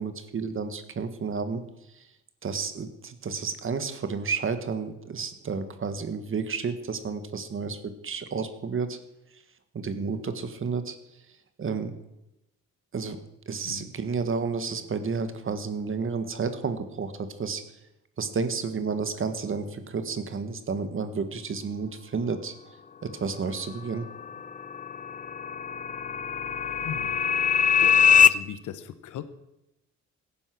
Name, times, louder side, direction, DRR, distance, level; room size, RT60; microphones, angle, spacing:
voice 1, 0.0-1.6 1.9-2.0 2.4-9.0 9.7-11.0 11.6-11.9 12.9-13.2 13.5-17.6 18.2-22.5 23.0-24.1, right 5 dB, 45° right, 9 dB, 1.6 m, -31 dB
sound 1, 24.0-28.3, left 7 dB, 25° left, 0.5 m, -22 dB
voice 2, 26.8-27.2 27.8-29.2, left 10 dB, 80° left, 12 dB, 1.2 m, -38 dB
16.5 x 10.0 x 6.1 m, 0.91 s
cardioid pair, 90°, 30 cm